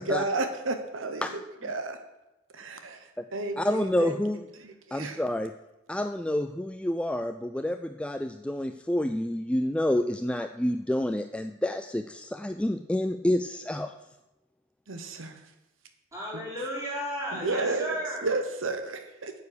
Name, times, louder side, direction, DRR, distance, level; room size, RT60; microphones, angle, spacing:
voice 1, 0.0-2.0 2.5-3.0 3.3-4.2 4.6-5.2 14.9-15.4 17.3-18.0 18.2-19.3, right 3 dB, 85° right, 7 dB, 1.1 m, -32 dB
voice 2, 3.6-4.5 4.9-5.5 5.9-13.9, left 1 dB, 5° left, 7 dB, 0.3 m, -28 dB
voice 3, 16.1-18.3, equal, 15° right, -6 dB, 4.4 m, -34 dB
9.3 x 8.4 x 6.7 m, 0.97 s
head